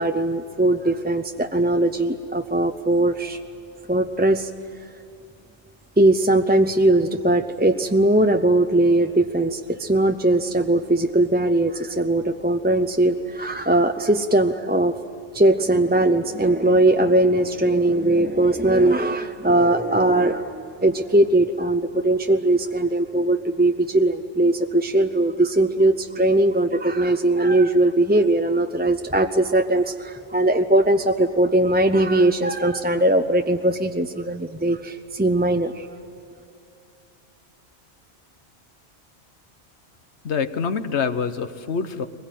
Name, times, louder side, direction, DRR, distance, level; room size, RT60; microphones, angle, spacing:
voice 1, 0.0-3.4 3.9-4.5 6.0-14.9 15.3-35.9, right 1 dB, 10° right, 6 dB, 0.5 m, -20 dB
voice 2, 40.2-42.1, left 6 dB, 85° left, 10 dB, 1.4 m, -25 dB
23.0 x 21.0 x 9.2 m, 2.7 s
omnidirectional pair, 1.1 m